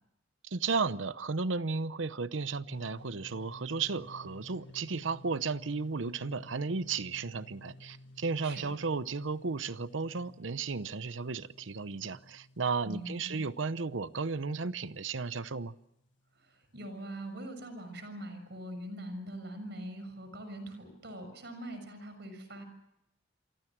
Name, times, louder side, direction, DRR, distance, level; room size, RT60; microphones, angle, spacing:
voice 1, 0.4-15.7, right 4 dB, 75° right, 0.8 m, -34 dB
sound 1, 2.7-16.2, left 1 dB, 70° left, 1.6 m, -55 dB
voice 2, 12.8-13.4 16.4-22.6, right 1 dB, 60° right, 6.5 m, -43 dB
28.5 x 24.0 x 6.1 m
head